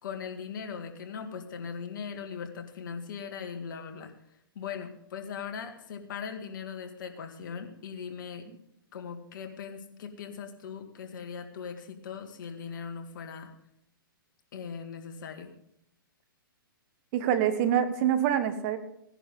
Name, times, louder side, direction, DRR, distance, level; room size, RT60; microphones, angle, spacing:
voice 1, 0.0-4.1 4.6-8.5 8.9-13.5 14.5-15.5, left 6 dB, 60° left, 5 dB, 2.1 m, -39 dB
voice 2, 17.1-18.8, right 9 dB, 40° right, 10 dB, 1.3 m, -25 dB
17.5 x 10.5 x 3.7 m, 0.75 s
hypercardioid pair, 125°, 12 cm